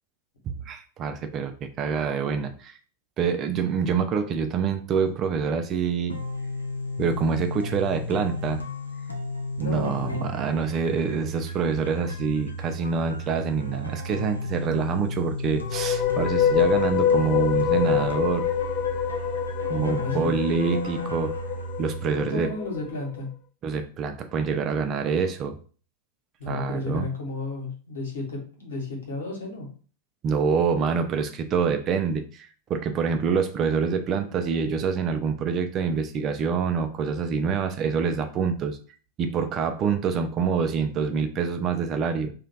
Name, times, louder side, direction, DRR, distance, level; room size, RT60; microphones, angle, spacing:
voice 1, 0.7-2.8 3.2-6.2 7.0-8.6 9.6-18.5 19.7-21.4 21.8-22.5 23.6-25.6 26.5-27.0 30.2-38.8 39.2-42.3, right 6 dB, 30° right, 7 dB, 0.4 m, -26 dB
sound 1, 6.1-22.1, left 1 dB, 85° left, 0.6 m, -33 dB
voice 2, 9.6-10.2 19.9-20.3 22.2-23.3 26.4-29.7, left 3 dB, 65° left, 0 dB, 1.3 m, -32 dB
sound 2, 15.6-22.9, left 8 dB, 35° left, 0.3 m, -25 dB
3.1 x 2.4 x 3.9 m, 0.40 s
figure-of-eight pair, 90°, 0 cm